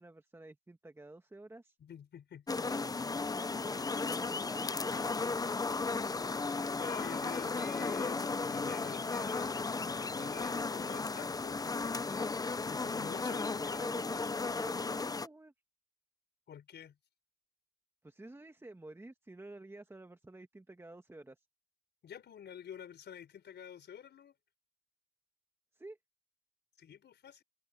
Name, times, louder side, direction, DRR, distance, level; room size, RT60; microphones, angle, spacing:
voice 1, 0.0-1.8 2.6-3.0 3.5-5.6 13.8-14.3 14.6-15.5 18.0-21.5 25.7-26.0, right 2 dB, 10° right, 1.8 m, -51 dB
voice 2, 1.8-2.9 6.8-12.3 12.6-13.8 16.5-17.0 22.0-24.3 26.8-27.4, left 8 dB, 60° left, 4.9 m, -49 dB
sound 1, 2.5-15.3, left 4 dB, 20° left, 0.6 m, -35 dB
cardioid pair, 90°, 20 cm